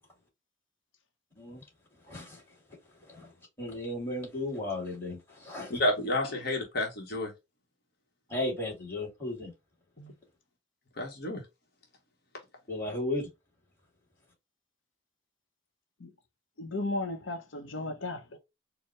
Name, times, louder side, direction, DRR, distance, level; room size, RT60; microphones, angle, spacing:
voice 1, 2.1-2.4 3.1-3.3 3.6-5.8 8.3-9.5 12.7-13.3, left 2 dB, 15° left, 2.3 m, -35 dB
voice 2, 5.7-7.3 10.0-10.1 11.0-11.4, left 1 dB, 55° left, 1.1 m, -30 dB
voice 3, 16.6-18.4, left 2 dB, 85° left, 0.8 m, -35 dB
4.5 x 2.1 x 3.0 m
head